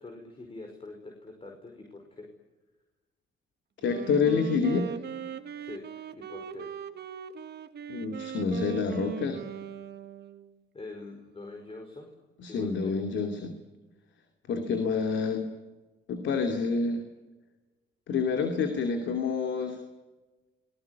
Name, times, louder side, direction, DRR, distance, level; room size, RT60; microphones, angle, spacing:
voice 1, 0.0-2.3 5.6-6.7 10.7-12.1 12.5-13.0, left 3 dB, 30° left, 3 dB, 5.2 m, -44 dB
voice 2, 3.8-5.0 7.9-9.4 12.4-13.5 14.5-15.6 16.1-17.0 18.1-19.8, left 5 dB, 70° left, 5 dB, 2.8 m, -28 dB
Wind instrument woodwind instrument, 3.8-10.6, right 9 dB, 55° right, 1.6 m, -39 dB
26.5 x 20.5 x 9.7 m, 1.2 s
cardioid pair, 90°, 20 cm